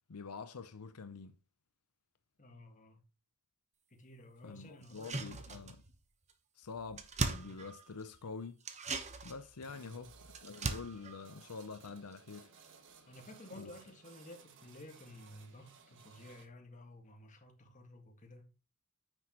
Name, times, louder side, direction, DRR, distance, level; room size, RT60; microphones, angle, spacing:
voice 1, 0.1-1.4 4.4-5.8 6.6-8.6 9.2-12.5 13.5-13.7, left 4 dB, 90° left, 0.7 m, -46 dB
voice 2, 2.4-3.0 3.9-5.7 9.6-10.0 13.1-18.5, left 1 dB, 35° left, 1.8 m, -54 dB
sound 1, 4.8-6.0 6.3-6.4 6.6-8.2 8.6-12.4 12.6-12.7, right 3 dB, 30° right, 1.0 m, -40 dB
sound 2, 9.6-16.5, right 5 dB, 60° right, 1.3 m, -60 dB
9.9 x 6.2 x 3.0 m
head